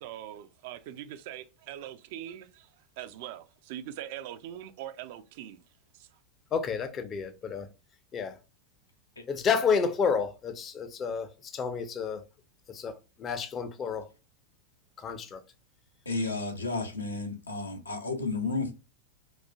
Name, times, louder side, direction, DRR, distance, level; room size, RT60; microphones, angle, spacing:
voice 1, 0.0-2.7 3.0-5.6 5.9-6.1, right 11 dB, 50° right, 0.4 m, -42 dB
voice 2, 6.5-7.7 8.1-8.3 9.3-12.2 12.7-12.9 13.2-14.0 15.0-15.4, left 6 dB, 25° left, 0.5 m, -30 dB
voice 3, 16.1-18.7, left 3 dB, 80° left, 0.8 m, -32 dB
4.1 x 2.4 x 2.2 m
figure-of-eight pair, 90°, 0 cm